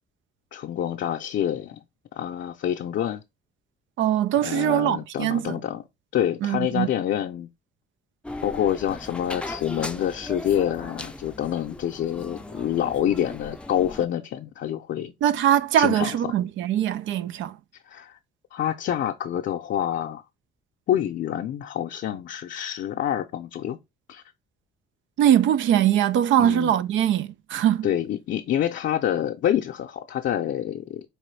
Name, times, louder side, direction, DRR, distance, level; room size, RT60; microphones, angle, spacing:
voice 1, 0.5-1.8 2.1-3.2 4.4-5.8 6.1-7.5 8.4-15.1 15.8-16.2 17.9-18.2 18.5-20.2 20.9-23.8 24.1-24.2 26.4-26.7 27.8-31.0, left 10 dB, 65° left, 0.6 m, -27 dB
voice 2, 4.0-5.6 6.4-6.9 15.2-17.6 25.2-27.9, right 11 dB, 75° right, 0.4 m, -22 dB
sound 1, 8.2-14.1, left 2 dB, 5° left, 0.4 m, -38 dB
4.9 x 3.0 x 3.1 m
cardioid pair, 90°, 20 cm